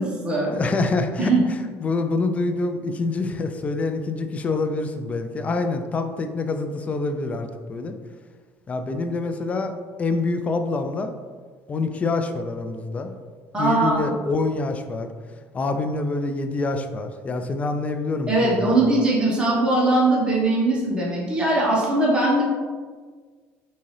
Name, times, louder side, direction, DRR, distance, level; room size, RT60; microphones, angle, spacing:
voice 1, 0.0-0.5 1.2-1.4 13.5-14.1 18.3-22.4, right 2 dB, 15° right, -5 dB, 1.2 m, -20 dB
voice 2, 0.5-7.9 8.7-9.7 10.0-11.2 11.7-13.1 13.6-15.1 15.5-18.8, left 3 dB, 25° left, 7 dB, 0.3 m, -26 dB
3.7 x 2.7 x 3.2 m, 1.5 s
supercardioid pair, 105°, 5 cm